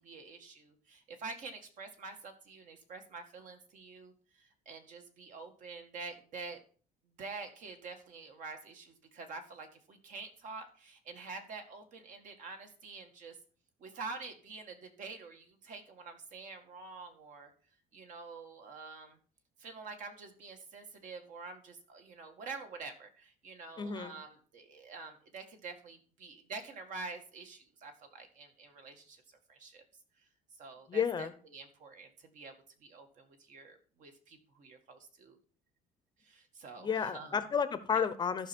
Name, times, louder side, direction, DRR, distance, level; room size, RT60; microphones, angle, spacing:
voice 1, 0.0-6.6 7.2-13.4 13.8-17.5 17.9-19.2 19.6-29.8 30.5-32.5 32.8-35.4 36.2-37.4 37.9-38.1, right 4 dB, 55° right, 5 dB, 1.9 m, -47 dB
voice 2, 23.8-24.1 30.9-31.3 36.8-38.5, left 7 dB, 30° left, 12 dB, 0.7 m, -32 dB
13.5 x 5.8 x 4.5 m, 0.43 s
cardioid pair, 140°, 16 cm